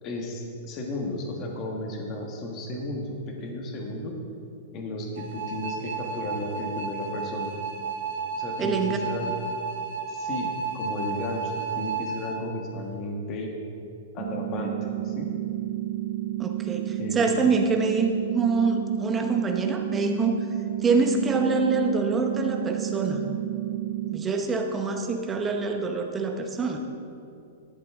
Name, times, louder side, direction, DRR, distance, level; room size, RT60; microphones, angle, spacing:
voice 1, 0.0-4.2 4.7-7.5 8.4-9.3 10.0-13.5 14.1-14.7 15.0-15.3 17.0-17.2, left 1 dB, 25° left, 1 dB, 1.3 m, -34 dB
sound 1, 5.2-12.3, right 4 dB, 80° right, 2.1 m, -32 dB
voice 2, 8.6-9.0 16.4-20.4 20.8-23.2 24.1-26.8, right 4 dB, 10° right, 3 dB, 0.8 m, -25 dB
sound 2, 14.2-24.2, right 14 dB, 45° right, 1.1 m, -31 dB
13.5 x 11.5 x 3.6 m, 2.5 s
supercardioid pair, 175°, 0 cm